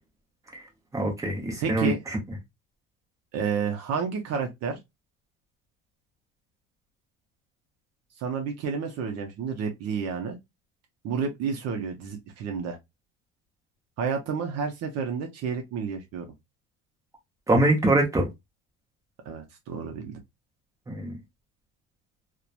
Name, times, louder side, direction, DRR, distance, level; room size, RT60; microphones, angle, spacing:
voice 1, 0.9-2.2 17.5-18.3 20.9-21.2, right 2 dB, 10° right, 0.7 m, -23 dB
voice 2, 1.6-2.0 3.3-4.8 8.2-10.4 11.0-12.8 14.0-16.3 19.3-20.1, right 6 dB, 50° right, 0.6 m, -30 dB
2.9 x 2.1 x 2.3 m
cardioid pair, 160°, 34 cm